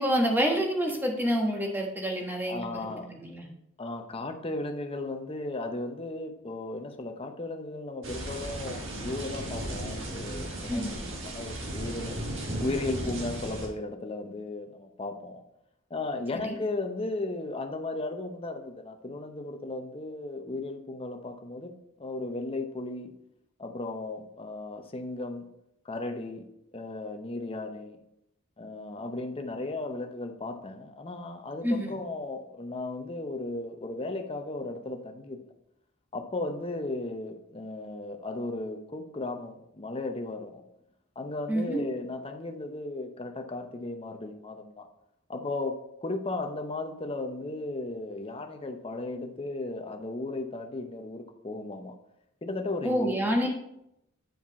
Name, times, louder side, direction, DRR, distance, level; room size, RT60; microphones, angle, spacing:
voice 1, 0.0-3.5 10.7-10.9 16.4-16.6 31.6-31.9 41.5-41.8 52.8-53.5, equal, 10° right, 1.3 m, -28 dB
voice 2, 2.5-3.1 3.8-12.2 12.6-15.4 15.9-21.7 22.0-23.1 23.6-25.5 25.8-26.4 26.7-28.0 28.6-35.4 36.1-40.6 41.2-44.9 45.3-52.0 52.4-53.2, left 2 dB, 25° left, 0.7 m, -35 dB
sound 1, 8.0-13.7, right 1 dB, 65° right, 1.6 m, -35 dB
9.2 x 4.9 x 4.1 m
head